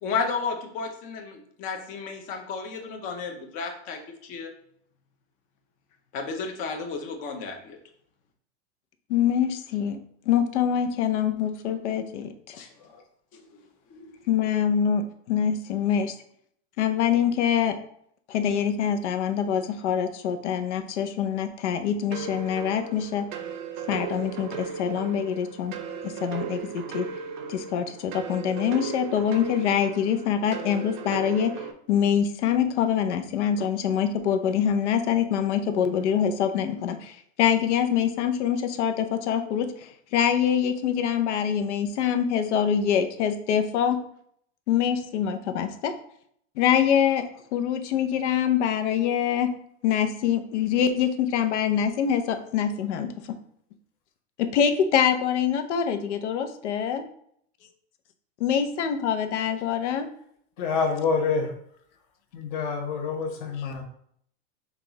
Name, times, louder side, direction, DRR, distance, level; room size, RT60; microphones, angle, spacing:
voice 1, 0.0-4.5 6.1-7.8 12.5-13.0 13.3-13.4 13.9-14.1 63.4-63.5, left 5 dB, 25° left, 4 dB, 0.5 m, -33 dB
voice 2, 9.1-10.0 10.3-12.5 14.3-16.1 16.8-17.8 18.3-23.3 23.9-25.7 26.0-27.0 27.5-31.5 31.9-39.7 40.1-44.0 44.7-45.9 46.6-47.2 47.5-49.5 49.8-53.4 54.4-57.0 58.4-60.1 63.6-63.7, left 8 dB, 85° left, 8 dB, 0.7 m, -25 dB
sound 1, 22.1-31.7, right 6 dB, 45° right, 0.6 m, -36 dB
voice 3, 60.6-61.5 62.3-63.8, left 5 dB, 45° left, 2 dB, 1.0 m, -27 dB
5.8 x 2.4 x 3.8 m, 0.67 s
supercardioid pair, 165°, 34 cm